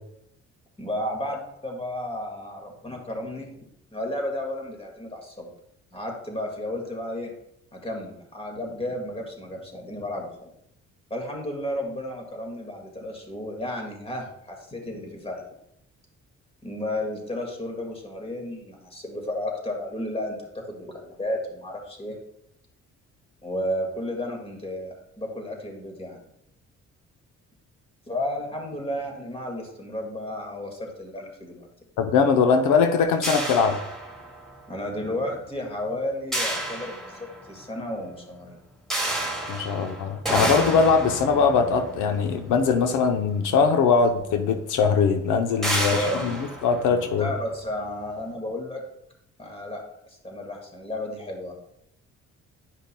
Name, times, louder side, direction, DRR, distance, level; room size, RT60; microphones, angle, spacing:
voice 1, 0.8-3.6 3.9-5.5 5.9-7.3 7.7-10.5 11.1-15.4 16.6-22.2 23.4-26.2 28.1-31.7 34.7-38.6 45.5-45.6 45.9-46.5 47.2-48.8 49.4-51.5, left 1 dB, 20° left, 1 dB, 1.8 m, -33 dB
voice 2, 32.0-33.8 39.5-47.3, left 5 dB, 85° left, 6 dB, 0.7 m, -21 dB
sound 1, 33.2-34.6 36.3-37.6 38.9-43.3 44.3-44.4 44.7-44.9 45.6-47.6, right 1 dB, ahead, 2.2 m, -30 dB
10.0 x 5.2 x 2.2 m, 0.77 s
cardioid pair, 90°, 30 cm